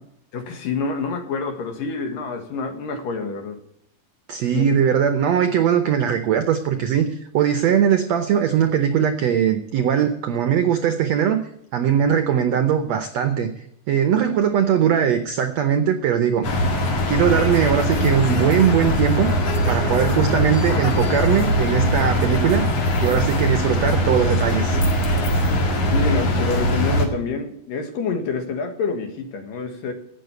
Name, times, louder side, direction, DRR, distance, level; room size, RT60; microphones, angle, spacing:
voice 1, 0.3-3.6 4.5-4.8 25.9-29.9, left 4 dB, 70° left, 7 dB, 3.1 m, -27 dB
voice 2, 4.3-11.4 11.7-13.5 13.9-16.5 17.1-19.3 19.7-22.6 23.0-24.8, right 8 dB, 75° right, 9 dB, 1.5 m, -20 dB
sound 1, 16.4-27.1, equal, 50° left, 2.7 m, -21 dB
13.0 x 8.9 x 6.9 m, 0.74 s
omnidirectional pair, 4.2 m